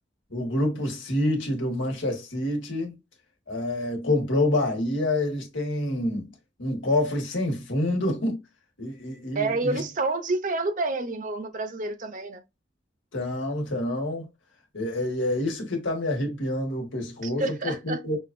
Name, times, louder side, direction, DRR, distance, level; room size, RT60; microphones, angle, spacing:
voice 1, 0.3-3.0 3.5-6.3 6.6-8.4 8.8-9.8 13.1-14.3 14.7-18.2, left 1 dB, 85° left, 1.6 m, -27 dB
voice 2, 9.3-12.4 17.2-18.0, right 2 dB, 45° right, 0.6 m, -28 dB
6.1 x 2.4 x 2.5 m
head